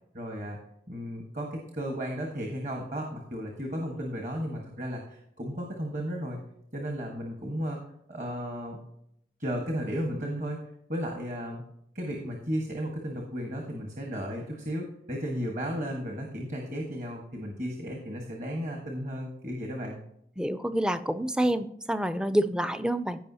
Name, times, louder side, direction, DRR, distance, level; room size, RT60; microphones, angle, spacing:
voice 1, 0.1-0.6 0.9-6.4 6.7-7.8 8.1-8.8 9.4-10.6 10.9-11.6 11.9-20.0, equal, 45° right, 1 dB, 1.4 m, -34 dB
voice 2, 20.4-23.2, right 1 dB, 5° right, 11 dB, 0.4 m, -27 dB
15.5 x 5.5 x 2.8 m, 0.75 s
head